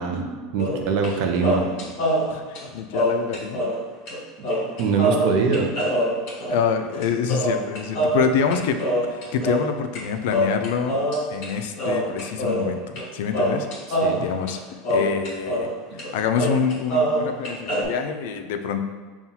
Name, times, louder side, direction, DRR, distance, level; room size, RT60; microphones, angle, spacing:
voice 1, 0.0-1.9 4.4-4.5 4.8-5.7 13.9-14.3 15.9-16.0, right 5 dB, 60° right, 4 dB, 0.5 m, -24 dB
sound 1, 0.6-1.1 1.4-3.8 4.1-4.2 4.4-10.0 10.3-11.5 11.8-13.1 13.3-15.7 16.0-16.1 16.3-17.9, right 1 dB, 55° left, 1.4 m, -24 dB
voice 2, 2.3-3.6 6.5-8.8 9.1-11.0 11.3-13.7 14.2-14.6 14.9-15.7 16.1-18.8, left 6 dB, 75° left, 7 dB, 0.3 m, -26 dB
5.5 x 2.3 x 2.7 m, 1.4 s
supercardioid pair, 145°, 0 cm